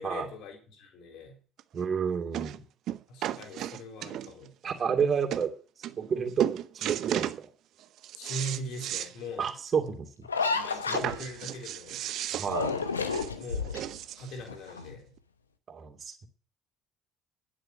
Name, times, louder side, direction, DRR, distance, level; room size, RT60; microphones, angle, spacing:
voice 1, 0.0-1.4 3.1-4.5 8.1-9.5 10.4-12.0 13.4-13.9 14.2-15.1, equal, 60° left, 4 dB, 3.8 m, -40 dB
sound 1, 1.6-1.7 2.3-2.6 2.9-4.5 5.0-5.1 5.3-5.5 5.8-6.1 6.4-7.4 7.8-9.1 9.5-9.6 9.9-10.0 10.9-14.4 15.2-15.3, right 12 dB, 55° right, 0.8 m, -34 dB
voice 2, 1.7-2.6 4.6-5.5 6.0-7.5 9.4-10.5 10.9-11.0 12.4-12.8 15.7-16.3, right 6 dB, 40° right, 4 dB, 2.7 m, -30 dB
sound 2, 10.2-11.5 12.4-14.0 14.4-15.0, left 4 dB, 90° left, 1.0 m, -31 dB
11.5 x 9.8 x 5.9 m, 0.38 s
figure-of-eight pair, 55°, 0 cm